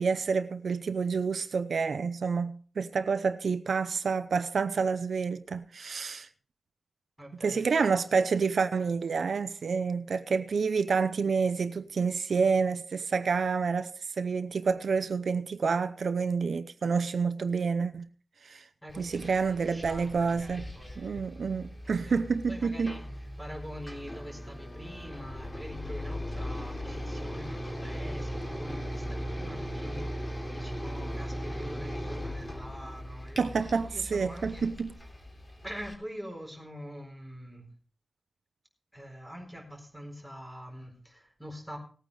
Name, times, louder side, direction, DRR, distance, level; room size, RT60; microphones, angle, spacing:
voice 1, 0.0-6.3 7.4-18.1 18.4-18.6 19.0-20.7 21.0-23.0 33.4-35.0, right 5 dB, 75° right, 0.7 m, -28 dB
voice 2, 7.2-7.7 18.8-21.2 21.8-23.0 23.4-34.6 35.6-37.7 38.9-41.8, equal, 5° left, 4.3 m, -45 dB
sound 1, 18.9-35.9, equal, 20° left, 3.2 m, -38 dB
19.0 x 9.1 x 3.3 m
wide cardioid pair, 120°, 0 cm